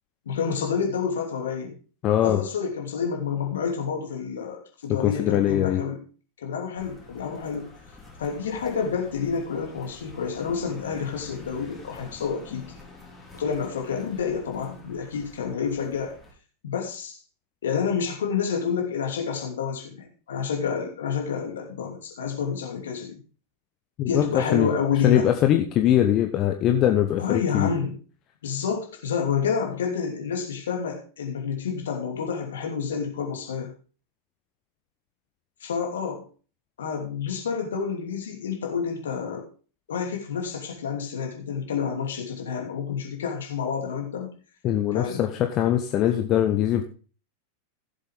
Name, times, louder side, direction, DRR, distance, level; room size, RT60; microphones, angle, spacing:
voice 1, 0.3-1.7 2.2-6.0 6.4-7.7 8.2-12.7 13.3-16.1 16.6-17.2 17.6-23.2 24.1-25.3 27.2-28.0 28.4-33.7 35.6-36.3 36.8-39.5 39.9-44.3 44.9-45.2, left 6 dB, 65° left, 2 dB, 2.8 m, -29 dB
voice 2, 2.0-2.4 5.0-5.8 24.0-24.7 25.0-27.7 44.6-46.8, left 11 dB, 35° left, 6 dB, 1.0 m, -22 dB
sound 1, 6.8-16.3, left 3 dB, 5° left, 4.0 m, -47 dB
16.0 x 7.4 x 3.6 m, 0.37 s
figure-of-eight pair, 90°, 0 cm